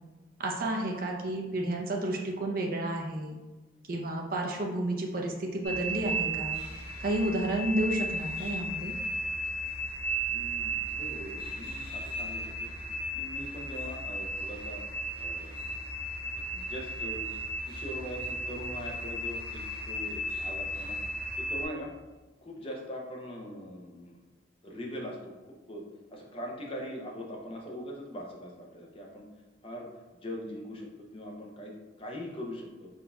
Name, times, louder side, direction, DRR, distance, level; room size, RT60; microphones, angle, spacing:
voice 1, 0.4-3.4 3.9-6.6 7.0-8.9, right 1 dB, 50° right, 0 dB, 0.6 m, -31 dB
sound 1, 5.6-21.6, right 1 dB, 60° left, 1.5 m, -35 dB
voice 2, 10.3-12.7 13.1-14.8 15.2-15.6 16.5-17.3 17.6-21.0 21.4-21.9 22.4-24.2 24.6-25.8 26.1-29.3 29.6-29.9 30.1-32.9, equal, 30° left, -1 dB, 0.6 m, -41 dB
3.9 x 3.9 x 2.3 m, 1.2 s
head